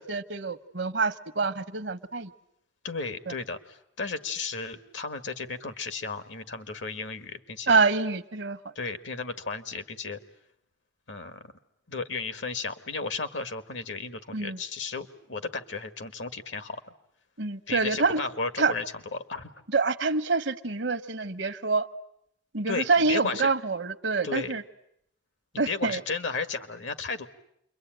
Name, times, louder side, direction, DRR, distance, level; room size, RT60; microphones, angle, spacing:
voice 1, 0.0-2.3 3.3-3.4 7.7-8.6 14.3-14.6 17.4-18.2 18.6-18.7 19.7-21.9 22.5-24.6 25.6-26.0, right 4 dB, 65° right, 12 dB, 1.0 m, -26 dB
voice 2, 2.8-7.8 8.8-10.2 11.1-11.5 11.9-16.8 17.7-18.8 19.1-19.5 22.7-23.5 24.2-24.5 25.7-27.3, left 4 dB, 75° left, 10 dB, 1.7 m, -34 dB
28.0 x 23.5 x 9.1 m, 0.75 s
head